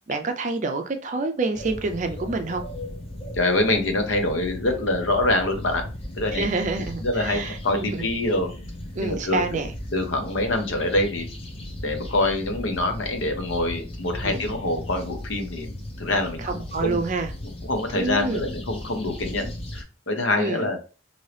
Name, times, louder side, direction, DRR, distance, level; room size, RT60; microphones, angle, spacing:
voice 1, 0.1-2.6 6.3-8.1 9.0-9.7 14.2-14.4 16.4-17.3 17.9-18.5 20.4-20.7, right 3 dB, 40° right, 0.4 m, -28 dB
sound 1, 1.5-19.8, left 1 dB, 30° left, 0.6 m, -36 dB
voice 2, 3.3-5.8 6.2-6.4 7.0-8.5 9.0-9.4 9.9-11.3 11.8-16.5 16.8-17.0 17.6-20.8, left 2 dB, 85° left, 0.7 m, -25 dB
2.8 x 2.7 x 3.2 m
head